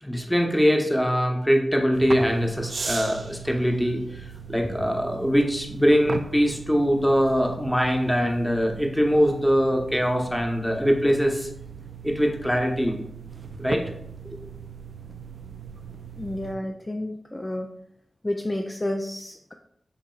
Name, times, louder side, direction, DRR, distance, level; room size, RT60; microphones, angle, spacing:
voice 1, 0.0-11.5 12.0-13.0 13.6-13.8 14.2-14.4, equal, 5° left, 2 dB, 0.9 m, -22 dB
sound 1, 1.9-16.6, right 5 dB, 65° right, 0.3 m, -38 dB
voice 2, 16.2-17.7 18.2-19.5, left 1 dB, 25° left, 3 dB, 0.4 m, -30 dB
6.0 x 3.6 x 2.4 m, 0.74 s
cardioid pair, 45°, 0 cm